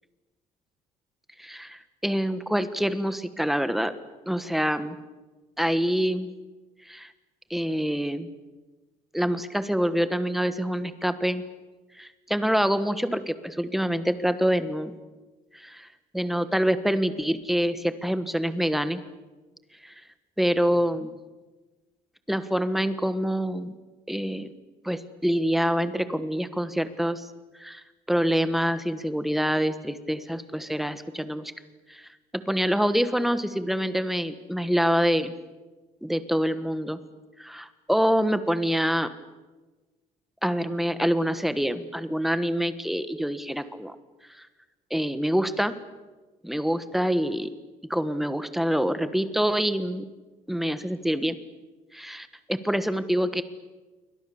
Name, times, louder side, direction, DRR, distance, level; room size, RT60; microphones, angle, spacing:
voice 1, 1.4-3.9 4.3-5.0 5.6-6.3 6.9-7.1 7.5-8.3 9.1-11.4 12.0-14.9 15.5-15.9 16.1-19.0 19.8-19.9 20.4-21.1 22.3-23.7 24.1-24.5 24.8-27.3 27.6-27.8 28.1-31.5 31.9-32.1 32.5-35.3 36.0-37.0 37.4-39.1 40.4-43.9 44.9-45.8 46.4-47.5 47.9-50.0 50.5-51.4 51.9-53.4, equal, ahead, 11 dB, 1.3 m, -26 dB
28.0 x 24.0 x 7.1 m, 1.2 s
cardioid pair, 165°, 14 cm